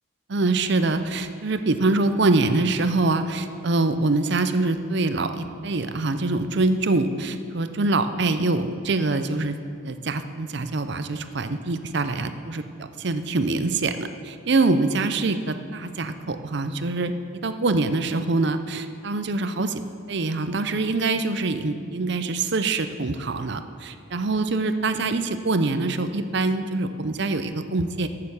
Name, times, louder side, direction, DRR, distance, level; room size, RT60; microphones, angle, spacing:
voice 1, 0.3-9.6 9.8-17.1 17.4-19.8 20.1-28.1, right 3 dB, 55° right, 10 dB, 0.6 m, -24 dB
14.0 x 6.8 x 7.0 m, 2.4 s
head